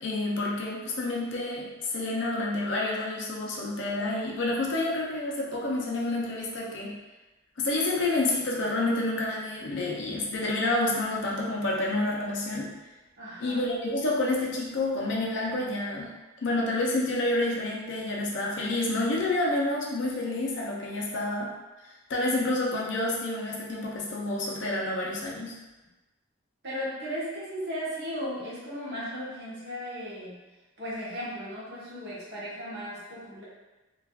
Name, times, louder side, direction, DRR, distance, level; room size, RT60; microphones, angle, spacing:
voice 1, 0.0-6.9 7.6-12.7 13.4-16.1 16.4-21.5 22.1-25.6, left 2 dB, 60° left, -3 dB, 0.5 m, -29 dB
voice 2, 13.2-13.6 26.6-30.4 30.8-33.4, equal, 50° right, -8 dB, 1.0 m, -36 dB
3.3 x 2.4 x 2.4 m, 1.1 s
head